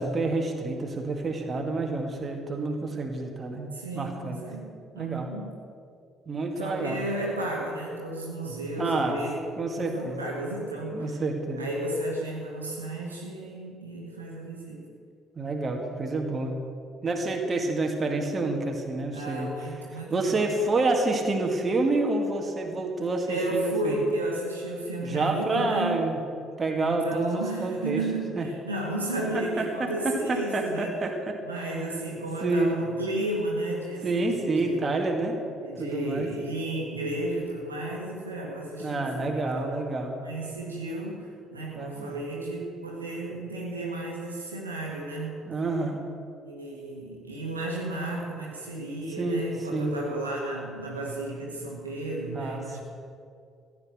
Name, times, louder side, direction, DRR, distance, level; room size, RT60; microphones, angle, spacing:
voice 1, 0.0-4.4 4.9-5.3 6.3-7.0 8.8-9.2 9.6-10.2 10.9-11.6 15.4-16.6 17.0-19.5 20.1-24.0 25.0-26.2 26.6-28.0 28.3-28.5 29.6-29.9 30.3-31.7 32.4-32.8 34.0-35.4 35.8-36.3 38.8-40.2 41.8-42.2 45.5-46.0 49.2-49.5 49.7-49.9 52.3-52.8, right 2 dB, 30° right, 2 dB, 2.1 m, -28 dB
voice 2, 3.7-5.5 6.6-11.1 11.6-14.9 19.1-20.5 23.3-26.0 26.8-31.0 31.4-34.9 35.6-39.8 40.2-45.4 46.4-52.8, right 1 dB, 85° right, -3 dB, 1.8 m, -33 dB
15.0 x 8.5 x 8.1 m, 2.3 s
figure-of-eight pair, 50°, 0 cm